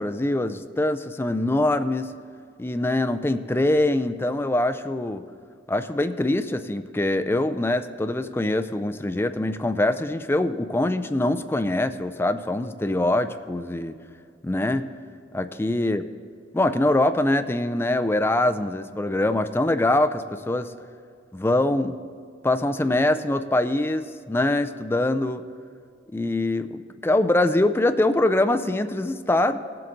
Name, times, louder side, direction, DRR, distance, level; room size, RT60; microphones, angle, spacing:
voice 1, 0.0-2.1 2.6-5.3 5.7-14.0 14.4-14.9 15.3-16.1 16.5-20.7 21.3-22.0 22.4-25.4 26.1-29.6, left 1 dB, 10° left, 10 dB, 0.3 m, -23 dB
17.0 x 7.7 x 3.8 m, 2.3 s
head